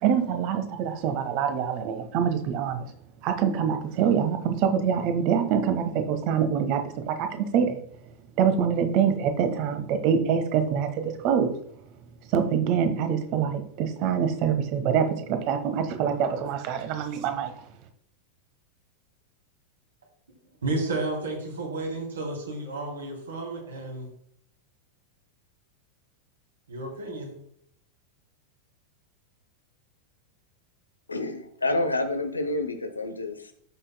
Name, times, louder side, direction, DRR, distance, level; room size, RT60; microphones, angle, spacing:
voice 1, 0.0-2.9 3.2-7.8 8.4-11.5 12.3-17.5, right 7 dB, 40° right, 7 dB, 1.3 m, -25 dB
voice 2, 20.6-24.1 26.7-27.4, right 2 dB, 70° right, -2 dB, 3.0 m, -32 dB
voice 3, 31.1-33.5, left 2 dB, 80° left, 9 dB, 1.0 m, -28 dB
14.0 x 5.8 x 2.2 m, 0.68 s
figure-of-eight pair, 90°, 0 cm